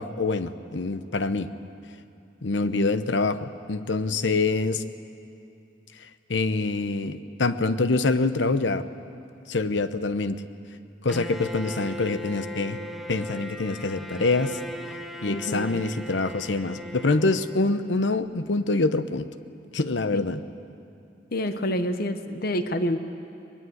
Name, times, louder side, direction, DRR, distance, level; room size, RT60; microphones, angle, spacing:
voice 1, 0.0-1.5 2.4-4.8 6.3-8.8 9.5-10.4 11.0-12.8 13.1-14.6 15.2-19.3 19.7-20.4, left 3 dB, 90° left, 12 dB, 0.9 m, -25 dB
voice 2, 2.6-2.9 14.1-14.2 15.3-15.7 20.1-20.2 21.3-23.0, equal, 55° left, 9 dB, 1.1 m, -28 dB
Bowed string instrument, 11.1-18.0, equal, ahead, 1.0 m, -38 dB
22.5 x 21.0 x 8.0 m, 2.6 s
head